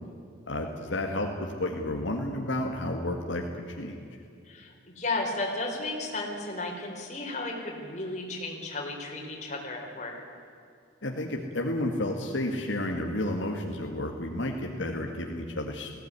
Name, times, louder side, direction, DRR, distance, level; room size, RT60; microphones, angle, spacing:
voice 1, 0.5-4.1 11.0-16.0, left 1 dB, 75° left, 2 dB, 2.1 m, -31 dB
voice 2, 4.4-10.2, left 2 dB, 40° left, 0 dB, 4.4 m, -34 dB
19.5 x 16.5 x 9.8 m, 2.6 s
head